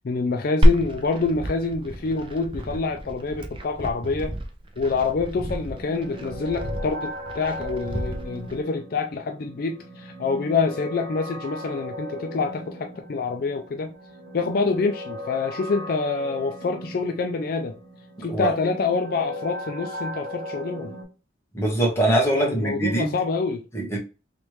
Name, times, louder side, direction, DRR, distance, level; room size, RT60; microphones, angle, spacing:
voice 1, 0.0-4.4 4.8-13.9 14.3-17.8 18.2-20.9 22.4-23.6, left 4 dB, 50° left, 0.4 m, -26 dB
Glass, 0.6-8.6, equal, 30° right, 0.5 m, -27 dB
sound 1, 5.3-21.0, equal, 65° right, 1.8 m, -38 dB
voice 2, 21.5-23.1 23.7-24.0, right 1 dB, 15° left, 1.2 m, -22 dB
3.3 x 3.0 x 3.1 m
head